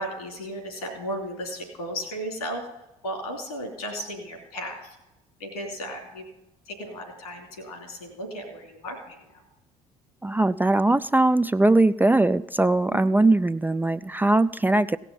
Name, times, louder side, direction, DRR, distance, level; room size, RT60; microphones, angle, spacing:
voice 1, 0.0-2.7 3.0-5.0 5.4-6.2 6.7-9.4, equal, 85° left, 4 dB, 2.8 m, -35 dB
voice 2, 10.2-15.0, right 2 dB, 10° right, 12 dB, 0.3 m, -20 dB
17.0 x 6.0 x 5.4 m, 0.95 s
figure-of-eight pair, 55°, 19 cm